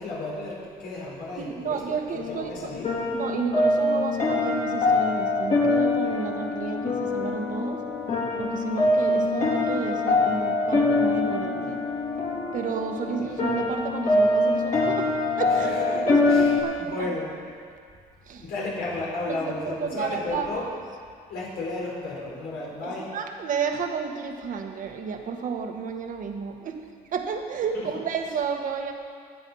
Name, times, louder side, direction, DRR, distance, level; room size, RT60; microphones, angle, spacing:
voice 1, 0.0-2.8 15.6-17.3 18.5-20.7 21.3-23.1 27.7-27.9, left 2 dB, 75° left, -4 dB, 4.5 m, -33 dB
voice 2, 1.4-2.7 3.1-7.8 8.4-11.8 12.5-15.1 15.4-17.1 18.3-18.5 19.3-20.7 22.6-26.8 27.1-28.9, right 6 dB, 50° right, 4 dB, 1.5 m, -31 dB
sound 1, 2.2-16.6, left 2 dB, 45° left, 4.5 m, -24 dB
21.0 x 7.9 x 5.6 m, 2.1 s
cardioid pair, 110°, 17 cm